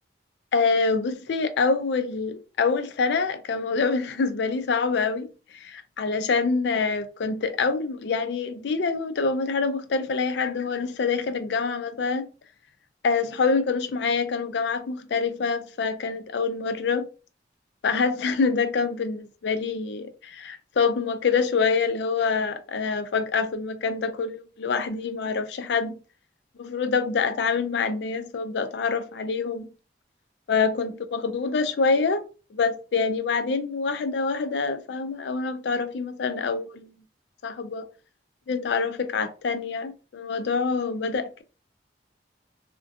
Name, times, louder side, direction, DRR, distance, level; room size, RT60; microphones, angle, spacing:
voice 1, 0.5-12.3 13.0-17.1 17.8-25.9 26.6-29.7 30.5-32.2 32.5-36.9 37.4-37.9 38.5-41.4, left 4 dB, 70° left, 0.4 m, -26 dB
2.6 x 2.1 x 2.5 m
head